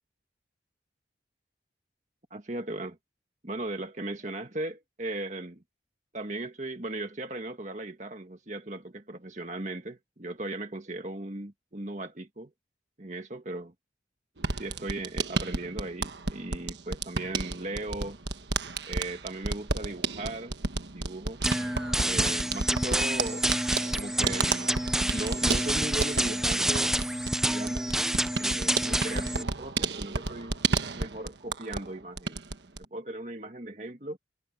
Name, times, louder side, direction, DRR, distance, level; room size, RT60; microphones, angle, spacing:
voice 1, 2.3-3.0 3.4-5.6 6.1-12.5 13.0-13.7 14.6-18.2 18.9-20.6 20.9-21.4 22.0-23.5 23.9-24.7 25.1-26.9 27.4-28.0 28.4-30.6 30.9-34.2, right 2 dB, 40° right, 1.8 m, -37 dB
sound 1, 14.4-31.9 32.2-32.9, right 4 dB, 70° right, 1.3 m, -32 dB
sound 2, 21.4-29.4, right 1 dB, 5° right, 0.4 m, -28 dB
head